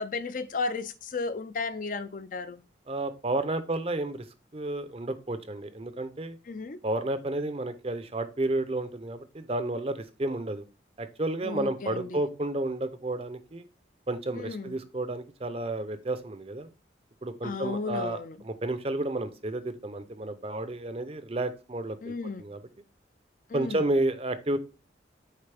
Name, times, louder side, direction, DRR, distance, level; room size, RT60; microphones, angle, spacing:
voice 1, 0.0-2.6 6.5-6.8 11.4-12.2 14.3-14.7 17.4-18.4 22.0-22.5 23.5-23.8, left 4 dB, 45° left, 0.4 m, -34 dB
voice 2, 2.9-4.3 4.5-6.4 6.8-10.6 11.0-13.7 14.1-16.7 17.2-22.6 23.5-24.6, right 2 dB, 30° right, 0.6 m, -31 dB
6.6 x 4.9 x 3.4 m
head